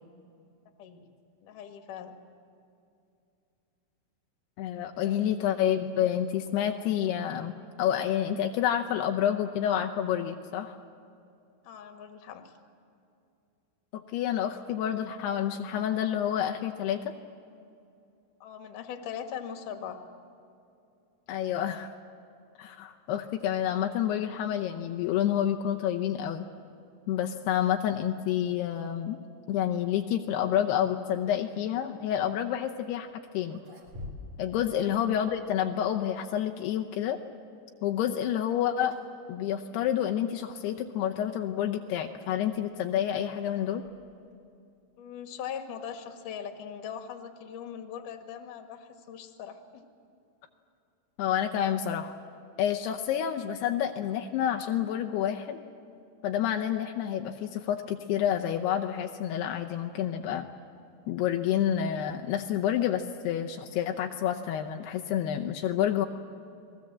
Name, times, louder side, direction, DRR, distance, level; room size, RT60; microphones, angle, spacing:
voice 1, 1.4-2.2 5.0-5.4 11.6-12.5 18.4-20.0 34.8-34.9 45.0-49.9, left 8 dB, 60° left, 5 dB, 2.4 m, -41 dB
voice 2, 4.6-7.5 7.8-10.8 13.9-17.0 21.3-21.9 22.6-26.5 27.1-29.2 29.5-33.1 33.3-33.6 34.4-37.2 37.8-39.0 39.3-43.8 51.2-52.1 52.6-55.6 56.2-60.5 61.1-66.1, left 10 dB, 85° left, 4 dB, 2.3 m, -29 dB
sound 1, 32.9-33.0 33.4-34.5 34.8-34.9 35.8-36.5 38.3-38.5 38.9-39.2 39.5-39.6 40.4-40.5 42.2-44.4, left 2 dB, 40° right, 4.8 m, -48 dB
29.5 x 21.0 x 7.5 m, 2.6 s
omnidirectional pair, 5.8 m